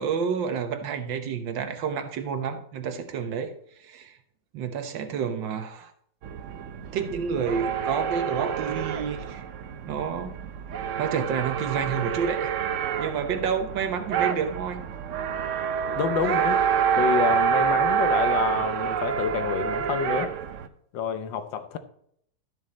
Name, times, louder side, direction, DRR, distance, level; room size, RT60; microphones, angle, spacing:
voice 1, 0.0-3.5 3.8-4.2 4.5-5.9 6.9-9.4 9.9-10.3 11.0-12.5 13.0-14.8, right 6 dB, 80° right, 8 dB, 1.7 m, -29 dB
sound 1, 6.2-20.7, right 8 dB, 65° right, 0.7 m, -27 dB
voice 2, 16.0-16.6 17.0-20.3 20.9-21.8, left 8 dB, 80° left, 10 dB, 1.6 m, -28 dB
12.0 x 6.4 x 4.2 m, 0.68 s
omnidirectional pair, 2.0 m